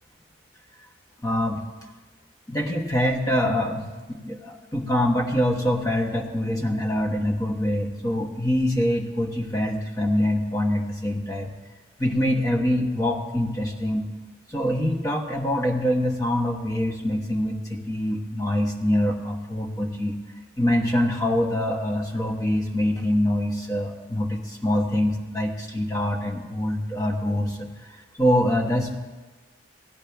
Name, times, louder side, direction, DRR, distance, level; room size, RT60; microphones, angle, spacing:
voice 1, 1.2-1.6 2.5-11.5 12.0-14.1 14.5-20.2 20.6-27.7 28.2-29.0, left 1 dB, 15° left, 1 dB, 1.1 m, -24 dB
17.0 x 10.0 x 3.4 m, 1.3 s
head